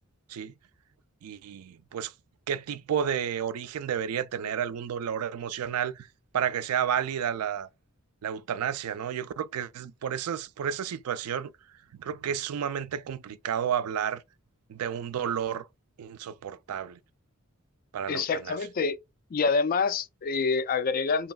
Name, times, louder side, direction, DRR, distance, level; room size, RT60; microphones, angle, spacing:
voice 1, 1.2-2.1 2.5-6.1 6.3-7.7 8.2-11.5 12.0-14.2 14.7-15.7 16.0-17.0 17.9-18.6, right 8 dB, 85° right, 0.4 m, -31 dB
voice 2, 18.1-19.0 19.3-21.3, left 4 dB, 40° left, 0.4 m, -26 dB
5.4 x 2.9 x 2.3 m
head